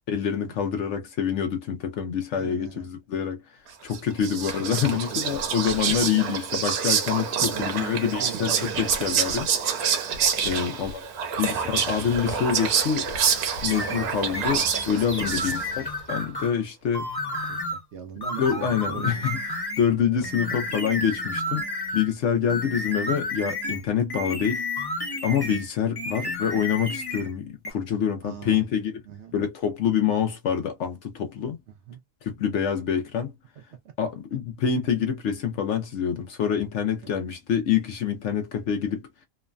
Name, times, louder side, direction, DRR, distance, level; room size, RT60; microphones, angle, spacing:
voice 1, 0.1-3.4 3.8-9.5 10.4-11.0 11.4-13.1 13.6-17.1 18.4-19.4 19.8-21.6 21.9-24.6 25.2-28.9 29.3-31.6 32.2-33.3 34.0-39.1, left 8 dB, 65° left, 0.8 m, -26 dB
voice 2, 2.3-2.9 3.7-3.8 4.2-5.4 5.9-6.0 7.5-9.0 10.5-10.8 15.3-15.6 17.5-19.3 19.9-20.3 28.2-28.6 29.1-29.3 31.7-32.0 37.0-37.2, right 8 dB, 65° right, 0.7 m, -41 dB
Whispering, 3.9-15.9, right 7 dB, 90° right, 1.2 m, -27 dB
sound 1, 11.1-16.5, left 2 dB, 35° right, 0.7 m, -47 dB
sound 2, 13.7-16.6 16.9-17.8 18.2-19.9 20.2-22.1 22.5-25.7 26.0-27.3 27.6-27.7, left 1 dB, 40° left, 0.3 m, -31 dB
3.1 x 2.1 x 2.3 m
omnidirectional pair, 1.5 m